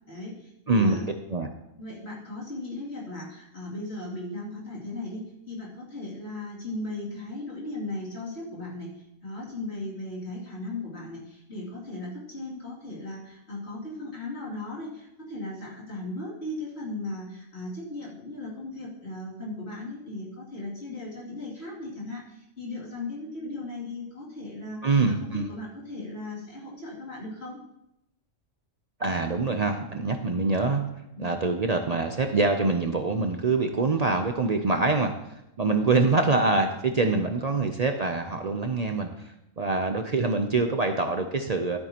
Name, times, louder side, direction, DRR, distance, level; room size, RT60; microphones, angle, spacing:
voice 1, 0.1-1.0 1.8-27.6 31.2-31.3, left 2 dB, 50° left, -6 dB, 3.0 m, -37 dB
voice 2, 0.7-1.0 1.3-1.5 24.8-25.5 29.0-30.8 31.2-35.1 35.6-39.1 39.6-41.8, right 3 dB, 50° right, 5 dB, 0.4 m, -24 dB
12.5 x 9.0 x 2.9 m, 0.85 s
omnidirectional pair, 1.4 m